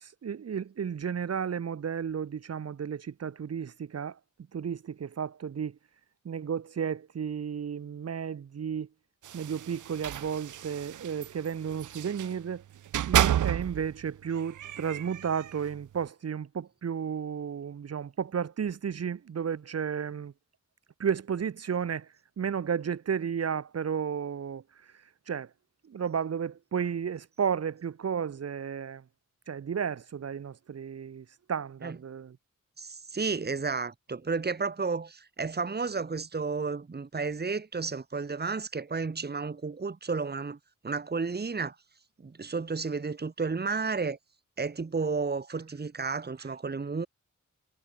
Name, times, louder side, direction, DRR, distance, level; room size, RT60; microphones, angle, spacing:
voice 1, 0.0-4.2 4.5-5.8 6.2-8.9 9.3-12.6 13.1-20.3 21.0-22.1 22.4-24.6 25.3-25.5 25.9-29.0 29.5-32.4, right 7 dB, 55° right, 0.8 m, -33 dB
sound 1, 9.2-12.4 12.9-13.9 14.3-15.7, right 11 dB, 75° right, 0.5 m, -31 dB
voice 2, 32.8-40.6 40.8-41.8 42.2-44.2 44.6-47.1, right 4 dB, 30° right, 1.8 m, -32 dB
wide cardioid pair, 130°, 30 cm